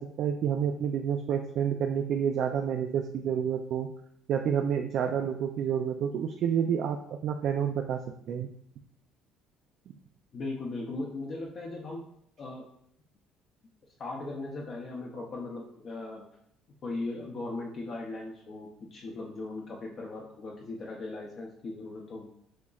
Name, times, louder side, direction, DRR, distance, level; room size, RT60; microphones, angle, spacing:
voice 1, 0.0-3.9 4.3-8.0 8.3-8.5, right 8 dB, 55° right, 5 dB, 0.3 m, -29 dB
voice 2, 10.3-12.0 12.4-12.6 14.0-16.3 16.8-22.3, left 2 dB, 40° left, -2 dB, 0.6 m, -38 dB
6.2 x 2.9 x 2.3 m, 0.71 s
cardioid pair, 140°, 0 cm